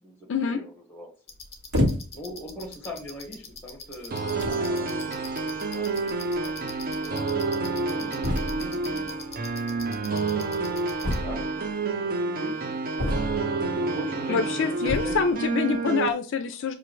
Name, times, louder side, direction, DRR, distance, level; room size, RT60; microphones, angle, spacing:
voice 1, 0.0-1.1 2.1-5.3 5.7-7.3 7.7-9.1 11.0-12.8 13.7-15.3, equal, 10° left, 2 dB, 1.1 m, -41 dB
sound 1, 1.3-11.2, left 4 dB, 25° left, 0.8 m, -44 dB
sound 2, 1.7-2.3 3.1-3.3 4.1-4.2 4.4-4.7 5.9-6.0 6.2-6.3 6.6-6.7 8.2-8.7 11.0-11.7 13.0-13.6 14.8-15.3, left 1 dB, 90° right, 1.3 m, -28 dB
sound 3, 4.1-16.1, right 3 dB, 40° right, 0.4 m, -29 dB
voice 2, 14.3-16.7, left 5 dB, 55° left, 9 dB, 0.3 m, -26 dB
5.8 x 2.5 x 3.0 m, 0.37 s
head